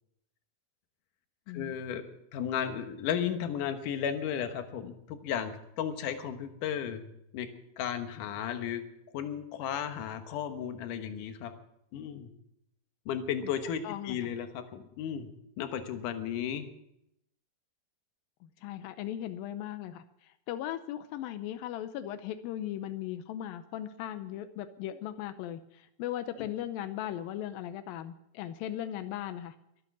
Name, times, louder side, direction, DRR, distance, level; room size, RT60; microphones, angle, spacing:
voice 1, 1.5-2.0 2.3-7.0 7.3-7.5 7.8-8.8 9.1-11.5 11.9-12.3 13.1-15.3 15.6-16.7, left 8 dB, 70° left, 7 dB, 2.7 m, -34 dB
voice 2, 13.8-14.2 18.4-29.6, left 11 dB, 90° left, 10 dB, 2.5 m, -38 dB
23.5 x 8.8 x 6.1 m, 0.80 s
omnidirectional pair, 4.0 m